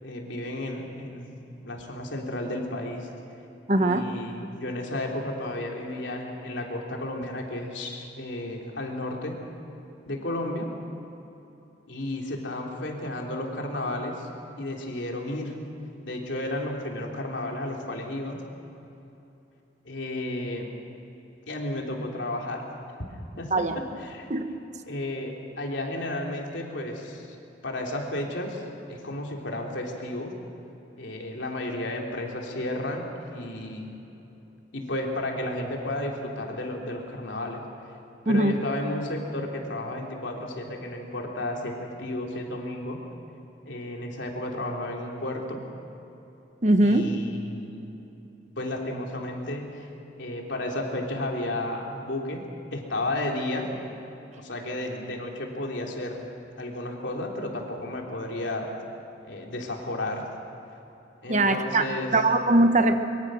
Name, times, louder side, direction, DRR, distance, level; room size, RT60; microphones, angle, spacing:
voice 1, 0.0-3.1 3.8-9.4 10.1-10.7 11.9-14.3 14.6-15.6 16.0-18.4 19.8-20.8 21.5-22.7 23.1-24.3 24.9-27.3 27.6-30.3 31.0-33.9 34.7-37.6 38.2-43.0 43.6-45.6 46.8-47.9 48.6-49.9 50.2-53.7 54.4-56.3 56.6-58.7 59.2-60.2 61.2-62.2, left 1 dB, 80° left, 0 dB, 3.3 m, -33 dB
voice 2, 3.7-4.1 23.5-23.7 24.3-24.4 38.3-38.5 46.6-47.1 61.3-61.9 62.1-62.9, right 2 dB, 40° right, 7 dB, 1.2 m, -21 dB
23.5 x 23.5 x 6.4 m, 3.0 s
head